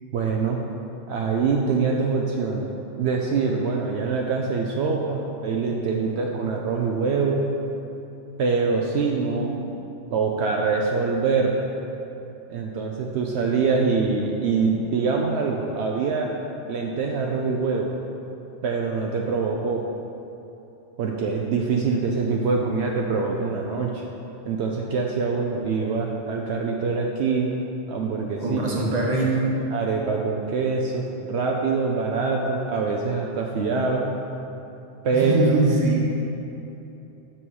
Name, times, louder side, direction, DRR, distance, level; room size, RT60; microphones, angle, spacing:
voice 1, 0.1-0.6 1.1-2.7 3.0-7.4 8.4-9.8 10.1-11.5 12.5-16.3 16.7-17.9 18.6-19.8 21.0-24.0 24.5-27.6 27.9-28.7 29.7-34.1 35.0-35.6, right 4 dB, 75° right, 0 dB, 0.8 m, -24 dB
voice 2, 28.4-29.5 35.1-36.1, right 2 dB, 40° right, -3 dB, 1.2 m, -22 dB
6.5 x 6.1 x 4.7 m, 3.0 s
omnidirectional pair, 1.2 m